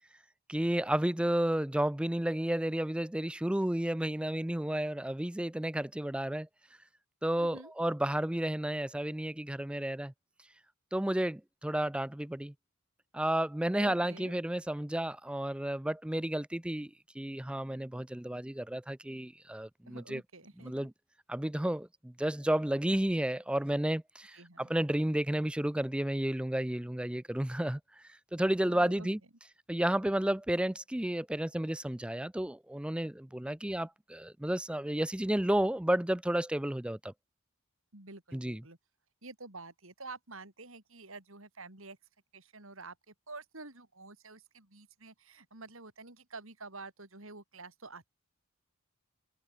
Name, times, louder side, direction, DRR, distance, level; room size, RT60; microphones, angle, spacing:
voice 1, 0.5-6.5 7.2-10.1 10.9-12.5 13.1-16.9 17.2-20.2 20.6-20.9 21.3-27.8 28.1-29.2 29.7-37.1 38.3-38.6, right 1 dB, 5° right, 0.3 m, -32 dB
voice 2, 7.4-7.7 13.8-14.4 19.9-20.9 24.3-24.7 28.6-29.1 37.9-38.8 39.2-42.0 42.3-48.1, right 3 dB, 65° right, 4.1 m, -49 dB
head